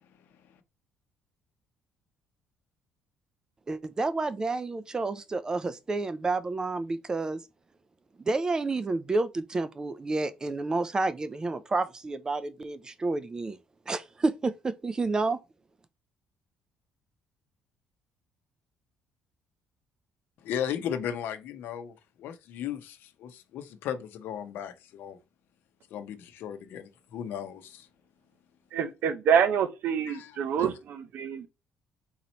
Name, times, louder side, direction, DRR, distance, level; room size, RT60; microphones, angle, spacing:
voice 1, 3.7-7.4 8.3-13.6 13.9-15.4, right 3 dB, 20° right, 0.3 m, -30 dB
voice 2, 20.4-25.2 25.9-27.9 30.0-30.7, left 9 dB, 70° left, 0.7 m, -36 dB
voice 3, 28.7-31.5, right 7 dB, 60° right, 0.6 m, -26 dB
3.9 x 2.9 x 4.2 m
cardioid pair, 135°, 4 cm